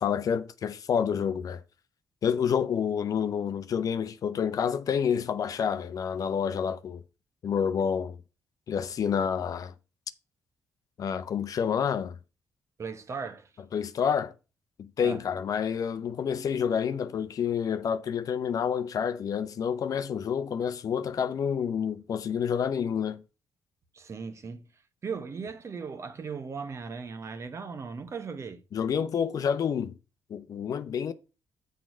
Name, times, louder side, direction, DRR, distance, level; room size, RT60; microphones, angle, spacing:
voice 1, 0.0-1.6 2.2-7.0 7.4-8.2 8.7-9.7 11.0-12.1 13.7-14.3 14.8-23.2 28.7-30.0 30.3-31.1, left 7 dB, 60° left, 0.7 m, -28 dB
voice 2, 12.8-13.5 15.0-15.2 23.9-24.7 25.0-28.6, right 5 dB, 45° right, 1.2 m, -37 dB
6.5 x 4.7 x 5.9 m
cardioid pair, 70°, 7 cm